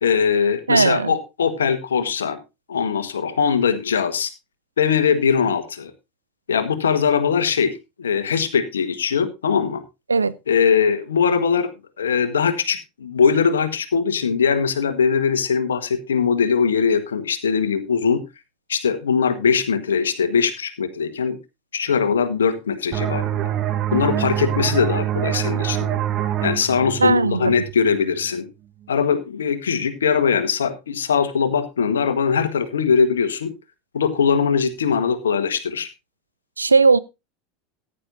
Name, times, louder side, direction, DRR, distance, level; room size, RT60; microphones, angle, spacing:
voice 1, 0.0-2.4 2.7-4.3 4.8-5.9 6.5-7.7 8.0-9.8 10.5-11.7 12.0-18.2 18.7-21.4 21.7-23.5 23.9-26.0 26.4-28.5 28.9-33.5 33.9-35.9, left 6 dB, 80° left, 1.4 m, -21 dB
voice 2, 0.7-1.1 10.1-10.3 27.0-27.6 36.6-37.0, right 4 dB, 90° right, 0.5 m, -17 dB
sound 1, 22.9-28.3, right 11 dB, 40° right, 1.3 m, -25 dB
14.5 x 10.0 x 2.7 m
figure-of-eight pair, 80°, 0 cm